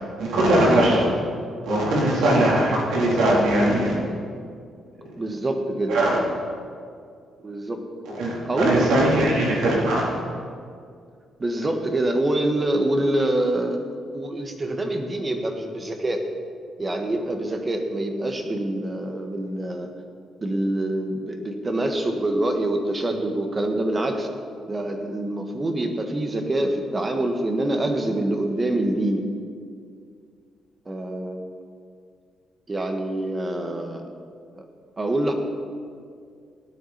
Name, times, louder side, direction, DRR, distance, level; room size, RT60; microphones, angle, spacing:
voice 1, 0.2-1.0 1.6-4.0 5.9-6.2 8.0-10.2, right 1 dB, 80° right, -3 dB, 3.5 m, -20 dB
voice 2, 5.2-6.0 7.4-7.8 8.4-9.3 11.4-13.8 14.1-16.2 16.8-19.9 20.4-24.3 24.7-29.2 30.8-31.4 32.7-34.0 34.6-34.7 35.0-35.3, right 1 dB, 25° right, 4 dB, 1.6 m, -25 dB
17.0 x 9.9 x 4.3 m, 2.2 s
cardioid pair, 90°, 0 cm